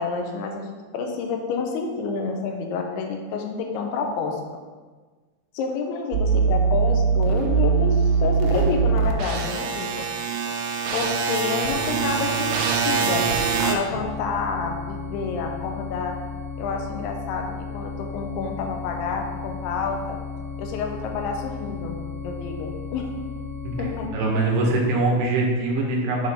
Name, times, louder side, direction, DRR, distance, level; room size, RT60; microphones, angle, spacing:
voice 1, 0.0-4.4 5.5-10.1 10.9-13.3 13.6-16.2 16.6-20.2 20.6-23.1 23.8-24.1, left 5 dB, 85° left, 2 dB, 2.8 m, -29 dB
sound 1, 6.1-13.8, right 5 dB, 90° right, 2.6 m, -22 dB
sound 2, 13.9-24.1, left 5 dB, 60° left, 1.9 m, -34 dB
voice 2, 24.1-26.3, right 2 dB, 65° right, -2 dB, 2.7 m, -23 dB
7.4 x 3.7 x 5.2 m, 1.4 s
omnidirectional pair, 4.6 m